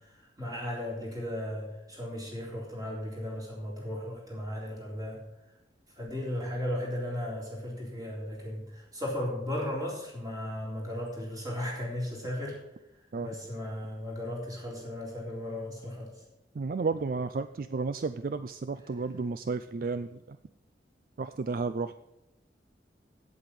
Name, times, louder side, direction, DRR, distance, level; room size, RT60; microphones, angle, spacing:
voice 1, 0.4-5.2 6.0-12.6 13.2-16.1, left 1 dB, 20° right, -3 dB, 3.7 m, -36 dB
voice 2, 16.6-20.4 21.2-21.9, right 4 dB, 50° right, 11 dB, 0.4 m, -32 dB
8.8 x 8.3 x 7.6 m, 0.89 s
head